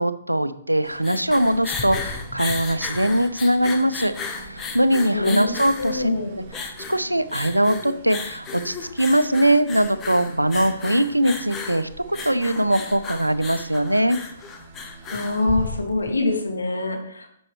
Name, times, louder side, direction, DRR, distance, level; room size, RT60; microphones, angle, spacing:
voice 1, 0.0-6.1 6.9-14.2, right 1 dB, 90° right, 13 dB, 0.5 m, -21 dB
sound 1, 0.7-16.2, left 5 dB, 15° left, 0.8 m, -34 dB
sound 2, 0.9-15.8, right 5 dB, 40° right, 0.8 m, -47 dB
voice 2, 5.1-5.5 5.8-6.3 15.1-17.3, left 2 dB, 75° left, 2 dB, 1.6 m, -24 dB
8.9 x 6.2 x 3.0 m, 0.68 s
figure-of-eight pair, 125°, 0 cm